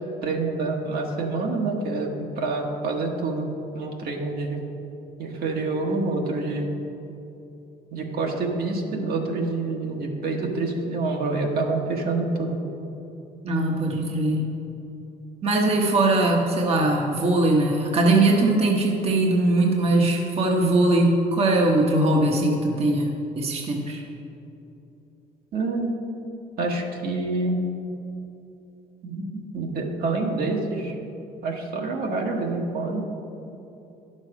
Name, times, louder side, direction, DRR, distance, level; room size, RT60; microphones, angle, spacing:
voice 1, 0.2-3.5 3.7-4.6 5.2-6.7 7.9-12.6 25.5-26.0 26.6-27.6 29.0-29.3 29.5-31.0 31.4-33.0, right 3 dB, 65° right, 1 dB, 1.4 m, -27 dB
voice 2, 13.4-14.5 15.4-23.1 23.4-24.0, right 2 dB, 35° right, 0 dB, 1.0 m, -21 dB
10.5 x 6.4 x 4.9 m, 2.9 s
cardioid pair, 110°, 17 cm